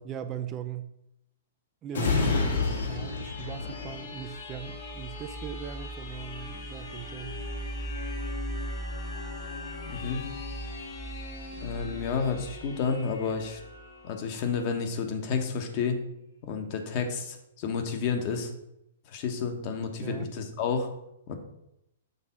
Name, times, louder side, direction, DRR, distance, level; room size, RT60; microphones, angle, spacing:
voice 1, 0.0-0.9 1.8-7.5 20.0-20.3, right 8 dB, 30° right, 0.4 m, -39 dB
sound 1, 1.9-15.2 15.7-15.8, left 4 dB, 70° left, 1.5 m, -35 dB
sound 2, 3.6-14.0, right 1 dB, 5° right, 0.8 m, -40 dB
voice 2, 9.9-10.2 11.6-13.6 14.0-16.0 16.4-18.5 19.1-20.9 21.3-21.4, left 5 dB, 45° left, 1.1 m, -30 dB
6.7 x 3.5 x 5.6 m
hypercardioid pair, 115°, 0 cm